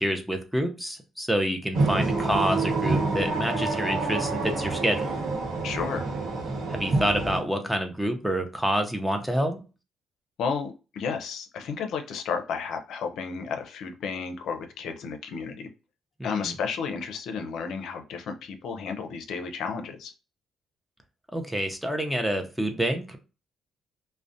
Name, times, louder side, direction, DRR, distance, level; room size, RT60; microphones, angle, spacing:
voice 1, 0.0-5.2 6.7-9.6 16.2-16.5 21.3-23.2, equal, 5° right, 5 dB, 0.5 m, -27 dB
sound 1, 1.7-7.4, right 3 dB, 75° right, 0.9 m, -27 dB
voice 2, 5.6-6.1 10.4-15.7 16.2-20.1, left 6 dB, 80° left, 5 dB, 0.4 m, -32 dB
2.4 x 2.0 x 2.6 m, 0.32 s
cardioid pair, 90°, 0 cm